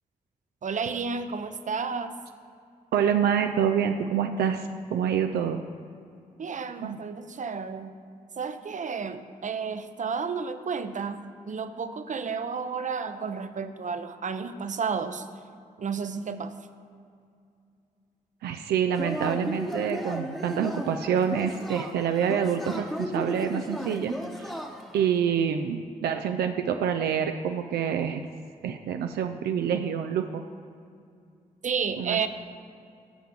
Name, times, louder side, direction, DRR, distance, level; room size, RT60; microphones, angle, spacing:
voice 1, 0.6-2.2 6.4-7.9 8.4-11.2 11.5-15.3 15.8-16.5 31.6-32.3, right 5 dB, 50° right, 10 dB, 0.6 m, -31 dB
voice 2, 2.9-5.6 6.8-7.0 18.4-24.6 24.9-28.2 28.6-30.4 32.0-32.3, right 8 dB, 85° right, 6 dB, 0.4 m, -27 dB
Yell / Cheering, 18.9-25.1, equal, ahead, 1.0 m, -35 dB
13.0 x 5.7 x 3.8 m, 2.4 s
supercardioid pair, 45°, 16 cm